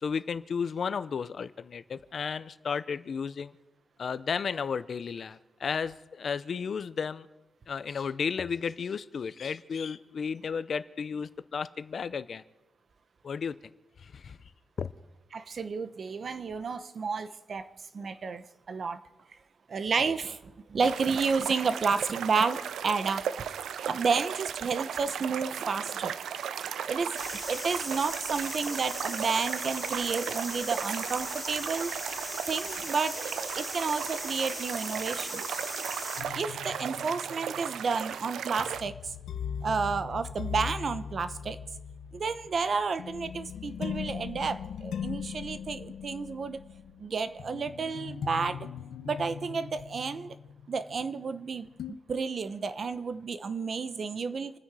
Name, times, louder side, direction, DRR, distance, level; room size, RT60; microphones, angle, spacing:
voice 1, 0.0-3.5 4.0-7.3 7.7-12.4 13.2-13.6 14.0-14.4 14.8-14.9, left 6 dB, 45° left, 14 dB, 0.6 m, -33 dB
voice 2, 15.3-19.0 19.7-23.2 23.8-26.2 26.9-27.1 27.5-31.9 32.5-35.6 36.3-39.1 39.6-41.6 42.1-46.6 47.0-48.7 49.0-50.3 50.7-54.5, right 5 dB, 40° right, 12 dB, 0.9 m, -31 dB
sound 1, 20.8-38.8, right 8 dB, 80° right, 0.6 m, -36 dB
sound 2, 27.2-36.2, left 1 dB, ahead, 2.9 m, -39 dB
sound 3, 36.2-51.4 51.8-51.9, left 7 dB, 70° left, 0.9 m, -40 dB
28.0 x 9.8 x 4.9 m, 0.98 s
wide cardioid pair, 140°, 0 cm